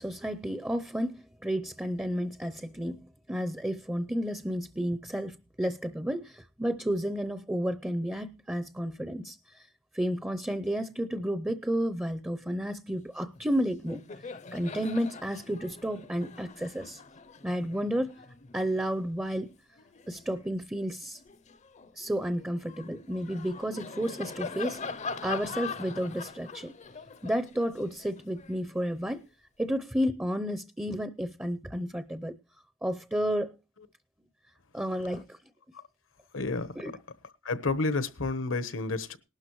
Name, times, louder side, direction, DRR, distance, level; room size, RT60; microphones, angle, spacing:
voice 1, 0.0-9.7 9.9-14.0 14.5-17.0 17.4-18.2 18.5-19.5 20.1-21.2 22.0-24.8 25.2-26.7 27.2-29.2 29.6-32.4 32.8-33.5 34.7-35.4 36.8-36.9, equal, 10° right, 0.6 m, -31 dB
Laughter, 13.3-13.5 13.8-20.5 21.0-29.2, left 4 dB, 35° left, 0.6 m, -43 dB
voice 2, 36.3-36.8 37.4-39.2, left 3 dB, 80° left, 1.1 m, -30 dB
19.0 x 12.0 x 3.1 m
head